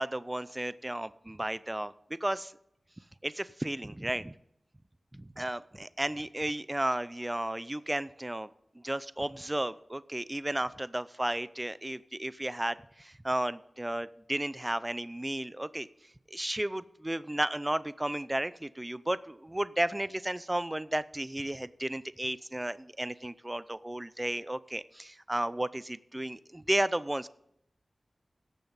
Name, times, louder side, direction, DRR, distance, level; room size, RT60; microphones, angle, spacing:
voice 1, 0.0-1.9 2.2-2.5 3.2-4.3 5.1-8.5 8.8-15.9 16.3-27.3, right 1 dB, 20° right, 16 dB, 0.5 m, -33 dB
17.0 x 7.1 x 4.0 m, 0.78 s
wide cardioid pair, 60°, 0 cm